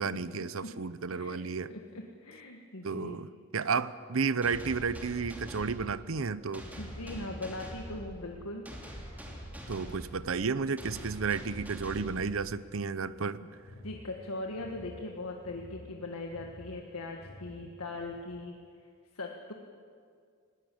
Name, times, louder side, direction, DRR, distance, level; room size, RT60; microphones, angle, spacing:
voice 1, 0.0-1.7 2.8-6.6 9.7-13.4, right 5 dB, 65° right, 16 dB, 0.7 m, -32 dB
voice 2, 1.1-1.4 1.7-3.2 6.8-8.7 13.8-18.6 19.1-19.5, left 2 dB, 85° left, 2 dB, 1.6 m, -40 dB
sound 1, 4.4-12.9, equal, 10° right, 2.8 m, -44 dB
sound 2, 8.2-18.2, left 1 dB, 40° left, 7.7 m, -53 dB
20.5 x 18.0 x 8.5 m, 2.2 s
head